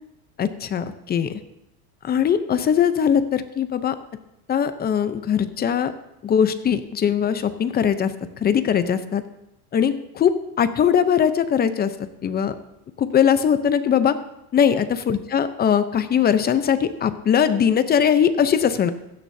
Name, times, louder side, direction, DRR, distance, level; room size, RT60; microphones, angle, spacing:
voice 1, 0.4-1.4 2.0-4.0 4.5-5.9 6.2-8.1 8.4-9.2 9.7-11.9 12.2-12.5 13.0-14.2 14.5-18.9, left 8 dB, 25° left, 11 dB, 0.7 m, -20 dB
16.0 x 12.5 x 2.8 m, 0.87 s
supercardioid pair, 135°, 42 cm